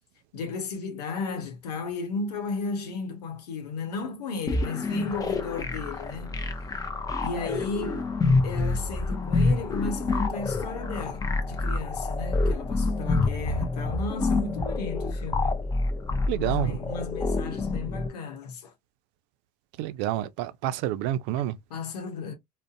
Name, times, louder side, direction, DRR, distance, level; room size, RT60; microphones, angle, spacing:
voice 1, 0.3-6.5 7.2-8.2 8.4-15.6 16.3-18.7 21.7-22.4, left 4 dB, 85° left, 0.8 m, -34 dB
sound 1, 4.5-18.1, left 3 dB, 20° left, 0.5 m, -27 dB
voice 2, 16.3-16.8 19.8-21.6, right 13 dB, 60° right, 0.4 m, -28 dB
2.5 x 2.1 x 2.5 m
hypercardioid pair, 70°, 20 cm